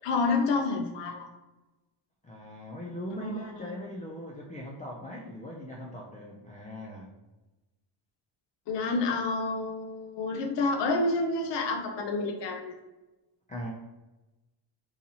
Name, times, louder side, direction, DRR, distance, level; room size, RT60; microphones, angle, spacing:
voice 1, 0.0-1.3 3.2-3.4 8.7-12.7, left 3 dB, 65° left, 4 dB, 0.7 m, -29 dB
voice 2, 2.2-7.1 13.5-13.7, equal, 20° left, -3 dB, 0.3 m, -40 dB
3.9 x 2.8 x 2.7 m, 1.1 s
cardioid pair, 130°, 46 cm